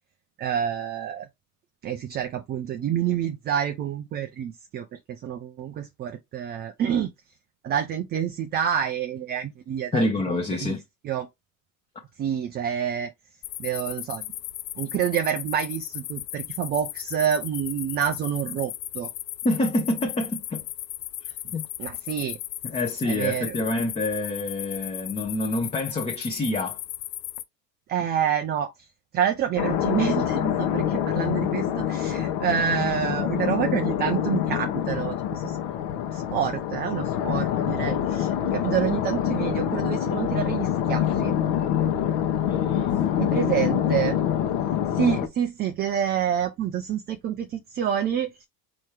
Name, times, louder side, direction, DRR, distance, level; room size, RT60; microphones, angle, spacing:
voice 1, 0.4-1.3 1.8-7.1 7.6-10.8 11.0-11.3 12.2-13.1 13.6-14.2 14.8-19.1 21.8-22.4 23.1-23.6 27.9-28.7 29.1-35.6 36.1-41.4 43.2-44.2 44.9-48.4, right 9 dB, 20° right, 0.4 m, -28 dB
voice 2, 9.9-10.8 19.4-20.6 21.5-21.7 22.6-26.8 42.5-43.3, left 2 dB, 15° left, 0.7 m, -27 dB
sound 1, 13.4-27.4, left 15 dB, 80° left, 0.6 m, -36 dB
sound 2, 29.6-45.3, left 10 dB, 55° left, 1.0 m, -26 dB
4.5 x 2.9 x 3.2 m
hypercardioid pair, 90°, 50 cm